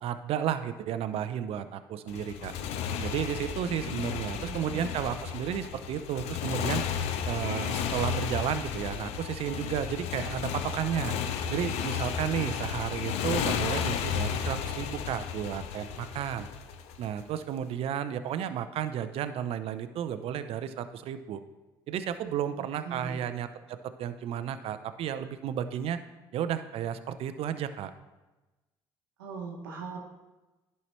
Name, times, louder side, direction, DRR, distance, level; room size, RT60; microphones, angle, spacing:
voice 1, 0.0-2.5 3.0-6.8 7.3-11.1 11.5-16.5 17.0-21.4 21.9-26.0 26.3-27.9, right 9 dB, 60° right, 11 dB, 0.5 m, -33 dB
Motorcycle, 2.1-17.2, left 8 dB, 70° left, 0.5 m, -33 dB
voice 2, 3.9-4.8 22.6-23.2 29.2-30.0, right 5 dB, 90° right, -1 dB, 1.0 m, -41 dB
10.5 x 5.6 x 3.1 m, 1.1 s
hypercardioid pair, 60°, 11 cm